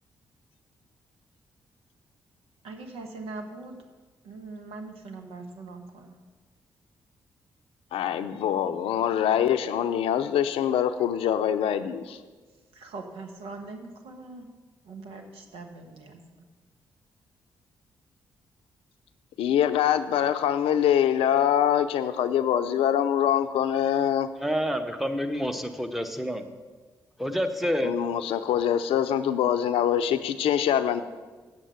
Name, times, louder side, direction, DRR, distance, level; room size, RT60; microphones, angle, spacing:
voice 1, 2.6-3.7 4.2-6.1 12.7-14.4 14.9-16.2, right 3 dB, 75° right, 4 dB, 1.2 m, -41 dB
voice 2, 7.9-12.2 19.4-24.3 27.8-31.0, left 10 dB, 75° left, 11 dB, 0.5 m, -24 dB
voice 3, 24.4-26.4 27.2-27.9, equal, ahead, 8 dB, 1.1 m, -28 dB
8.2 x 7.4 x 6.9 m, 1.4 s
hypercardioid pair, 40°, 10 cm